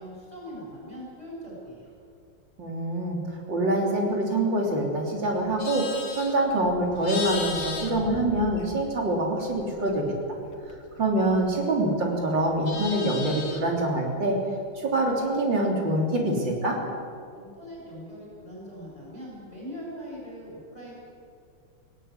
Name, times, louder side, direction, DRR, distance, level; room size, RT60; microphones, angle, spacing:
voice 1, 0.0-1.9 17.4-20.9, equal, 20° left, -4 dB, 7.4 m, -41 dB
voice 2, 2.6-10.1 11.0-14.4 14.7-16.8, right 1 dB, 65° right, 0 dB, 4.0 m, -25 dB
Livestock farm animals working animals, 5.3-9.0 9.4-11.9 12.2-13.8, left 4 dB, 60° left, 2.5 m, -37 dB
19.0 x 17.5 x 8.3 m, 2.3 s
omnidirectional pair, 2.1 m